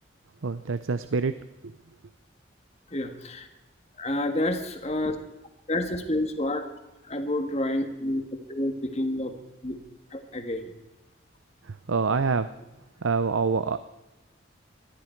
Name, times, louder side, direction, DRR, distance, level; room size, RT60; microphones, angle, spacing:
voice 1, 0.4-1.4 1.6-1.7 11.6-12.5 13.0-13.8, right 4 dB, 85° right, 13 dB, 0.6 m, -26 dB
voice 2, 2.9-3.5 4.0-5.2 5.7-6.7 7.0-9.3 9.6-9.8 10.1-10.7, left 1 dB, 30° left, 6 dB, 1.8 m, -29 dB
20.5 x 13.5 x 4.6 m, 1.0 s
head